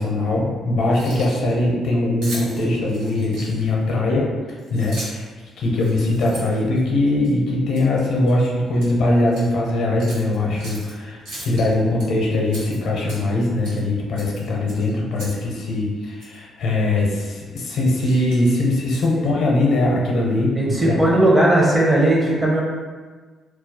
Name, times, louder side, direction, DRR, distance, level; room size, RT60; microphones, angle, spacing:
voice 1, 0.0-4.3 4.7-5.3 5.6-20.5 20.9-21.0, left 2 dB, 70° left, -2 dB, 0.6 m, -21 dB
Keys jangling, 0.8-1.5 2.2-3.8 4.6-5.3 5.7-7.3 7.7-7.9 8.3-8.9 9.3-9.5 10.0-10.9 11.3-12.1 12.5-13.4 13.6-13.8 14.2-15.4 15.7-15.8 16.2-16.4 17.0-17.2 17.5-19.3, right 1 dB, 90° right, 0.8 m, -38 dB
voice 2, 20.5-22.6, right 1 dB, 20° right, -4 dB, 0.6 m, -17 dB
2.3 x 2.0 x 2.7 m, 1.4 s
cardioid pair, 90°, 0 cm